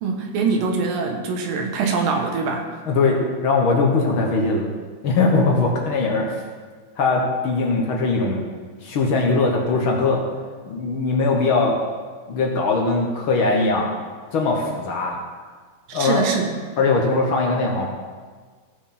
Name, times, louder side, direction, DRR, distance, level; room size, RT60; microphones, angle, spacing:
voice 1, 0.0-2.7 15.9-16.5, right 4 dB, 85° right, 2 dB, 2.9 m, -23 dB
voice 2, 2.9-4.7 5.0-6.4 7.0-8.4 8.8-10.2 10.7-11.8 12.3-13.9 14.3-15.2 15.9-16.3 16.8-17.9, left 3 dB, 60° left, -1 dB, 1.4 m, -20 dB
16.0 x 6.1 x 4.3 m, 1.5 s
omnidirectional pair, 3.9 m